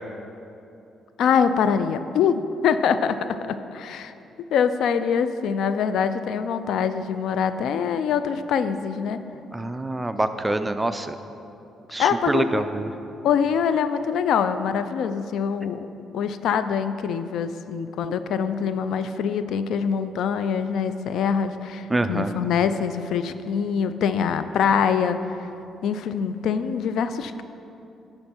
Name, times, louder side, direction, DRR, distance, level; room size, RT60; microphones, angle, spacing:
voice 1, 1.2-4.1 4.5-9.2 12.0-12.6 13.2-15.9 16.1-25.2 25.8-27.4, left 7 dB, 75° left, 11 dB, 0.3 m, -24 dB
voice 2, 9.5-11.1 11.9-12.9 21.9-22.3, right 2 dB, 15° right, 10 dB, 0.4 m, -25 dB
9.6 x 4.4 x 6.0 m, 2.8 s
cardioid pair, 90°, 0 cm